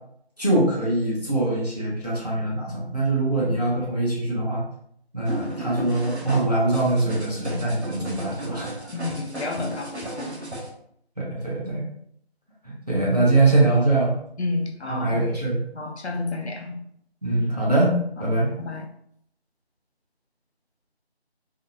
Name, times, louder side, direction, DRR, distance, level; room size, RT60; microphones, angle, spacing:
voice 1, 0.4-4.6 5.1-8.7 11.2-11.8 12.6-14.1 14.9-15.6 17.2-18.5, right 2 dB, 40° right, -6 dB, 0.8 m, -23 dB
sound 1, 5.2-10.7, right 1 dB, 80° right, 0.8 m, -35 dB
voice 2, 8.9-10.3 14.4-15.3 15.7-16.8 18.6-18.9, left 3 dB, 80° left, 2 dB, 0.6 m, -30 dB
2.6 x 2.0 x 2.6 m, 0.70 s
figure-of-eight pair, 180°, 33 cm